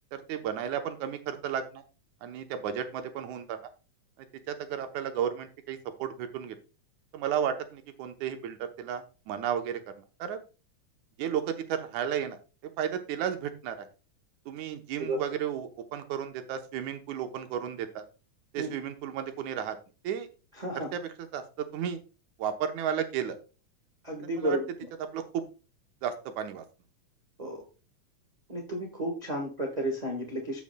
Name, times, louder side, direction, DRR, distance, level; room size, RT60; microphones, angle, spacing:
voice 1, 0.1-1.8 2.2-3.6 4.2-6.6 7.1-9.8 10.2-10.4 11.2-12.4 12.6-13.8 14.5-18.1 18.5-19.8 20.0-20.3 20.8-21.0 21.3-22.0 22.4-23.4 24.4-24.6 25.1-25.4 26.0-26.6, right 9 dB, 85° right, 7 dB, 2.3 m, -33 dB
voice 2, 20.6-20.9 24.0-24.6 27.4-27.6 28.5-30.6, right 1 dB, 30° right, 0 dB, 0.7 m, -32 dB
16.0 x 5.3 x 2.2 m, 0.33 s
omnidirectional pair, 3.3 m